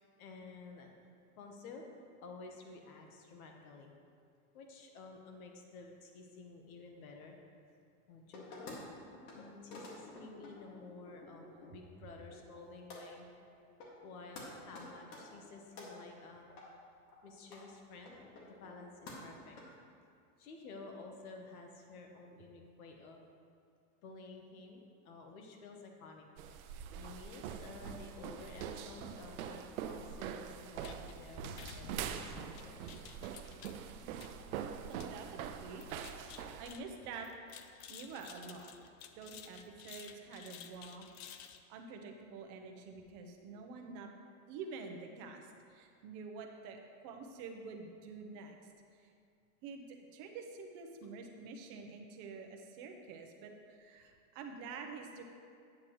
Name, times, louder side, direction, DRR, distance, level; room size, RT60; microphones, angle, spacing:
voice 1, 0.2-0.9 1.4-1.8 2.2-3.9 4.5-7.4 8.1-8.8 9.3-13.3 14.0-16.5 17.2-19.6 20.4-23.2 24.0-26.3 26.6-32.8, left 3 dB, 70° left, 2 dB, 1.3 m, -52 dB
sound 1, 8.3-8.8 9.1-9.4 9.7-11.7 12.0-12.6 12.9-13.0 13.5-13.6 13.8-14.1 14.4-14.5 14.7-15.9 16.5-16.6 17.1-17.2 17.4-17.6 18.1-18.8 19.1-19.6, left 3 dB, 85° left, 2.1 m, -50 dB
sound 2, 26.4-36.8, right 8 dB, 65° right, 0.6 m, -44 dB
sound 3, 30.8-41.6, left 8 dB, 45° left, 0.4 m, -54 dB
voice 2, 34.9-35.9 36.3-37.3 37.9-38.7 39.2-41.1 41.7-44.1 44.5-48.6 49.6-55.2, right 4 dB, 35° right, 3 dB, 0.8 m, -48 dB
8.7 x 8.2 x 3.1 m, 2.3 s
supercardioid pair, 160°, 45 cm